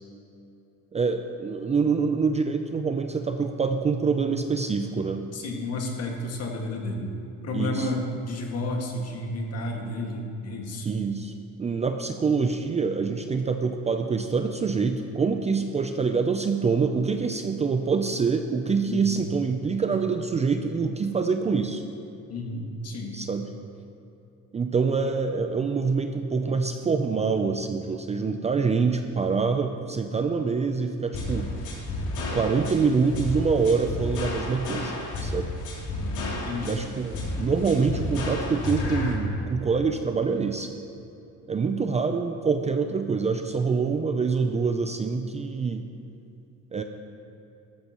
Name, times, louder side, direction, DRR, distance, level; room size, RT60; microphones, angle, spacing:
voice 1, 0.9-5.2 7.5-7.9 10.9-21.8 23.1-23.5 24.5-31.5 32.3-35.5 36.6-40.7 41.5-45.9 46.7-46.8, right 5 dB, 20° right, 6 dB, 0.5 m, -25 dB
voice 2, 5.3-7.1 7.4-10.9 18.9-19.1 22.3-23.2 36.0-36.8, left 1 dB, 50° left, 1 dB, 2.0 m, -32 dB
sound 1, 31.1-39.1, left 2 dB, 65° left, 3.0 m, -31 dB
14.0 x 13.5 x 3.0 m, 2.8 s
cardioid pair, 125°, 32 cm